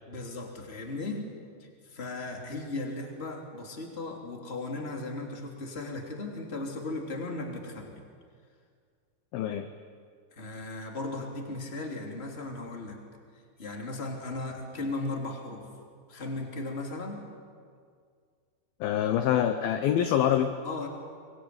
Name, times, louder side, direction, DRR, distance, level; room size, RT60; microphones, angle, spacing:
voice 1, 0.1-1.3 1.6-8.0 10.4-13.0 13.6-15.7 16.1-17.2 20.6-20.9, left 2 dB, 15° left, 2 dB, 2.3 m, -36 dB
voice 2, 9.3-9.7 18.8-20.5, left 10 dB, 80° left, 8 dB, 2.2 m, -25 dB
24.0 x 21.5 x 9.6 m, 2.1 s
omnidirectional pair, 5.4 m